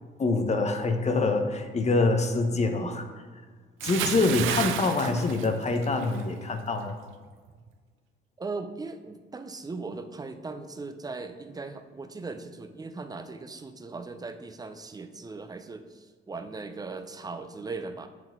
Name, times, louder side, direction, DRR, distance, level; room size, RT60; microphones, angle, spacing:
voice 1, 0.2-3.0 3.8-7.0, left 3 dB, 35° left, 6 dB, 0.8 m, -25 dB
Bathtub (filling or washing) / Splash splatter, 3.8-6.2 6.5-6.8, right 9 dB, 80° right, 0.5 m, -31 dB
voice 2, 8.4-18.1, right 3 dB, 20° right, 8 dB, 0.5 m, -38 dB
7.7 x 3.9 x 4.6 m, 1.5 s
cardioid pair, 90°, 20 cm